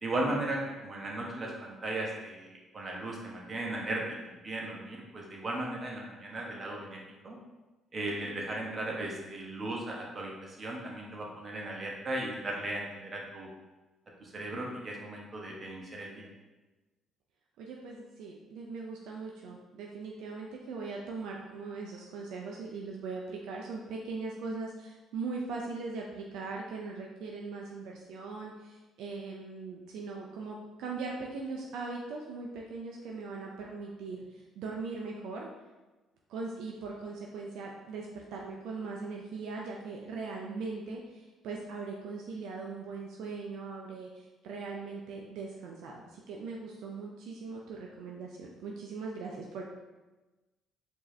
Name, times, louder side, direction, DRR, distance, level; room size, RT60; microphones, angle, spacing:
voice 1, 0.0-7.0 7.2-7.4 7.9-13.5 14.2-16.3, right 1 dB, 40° right, -2 dB, 1.1 m, -36 dB
voice 2, 17.6-35.5 36.3-49.6, right 4 dB, 75° right, -1 dB, 0.4 m, -40 dB
4.5 x 2.7 x 3.1 m, 1.1 s
supercardioid pair, 60°, 0 cm